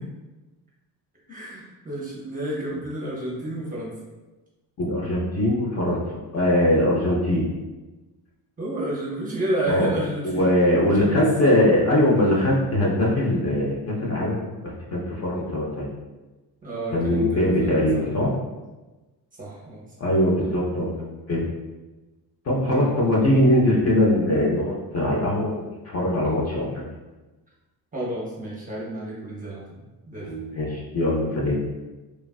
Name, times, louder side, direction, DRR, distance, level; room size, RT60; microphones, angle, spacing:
voice 1, 1.3-4.0 8.6-10.5 11.0-11.6 16.6-18.0 19.4-19.9 22.6-22.8 27.9-29.8 30.1-30.5, right 1 dB, 20° right, -6 dB, 0.6 m, -31 dB
voice 2, 4.8-7.5 9.7-9.9 10.2-15.9 16.9-18.3 20.0-21.4 22.5-26.8 30.3-31.6, left 1 dB, 40° left, -4 dB, 0.5 m, -22 dB
3.2 x 2.4 x 2.3 m, 1.1 s
cardioid pair, 140°, 42 cm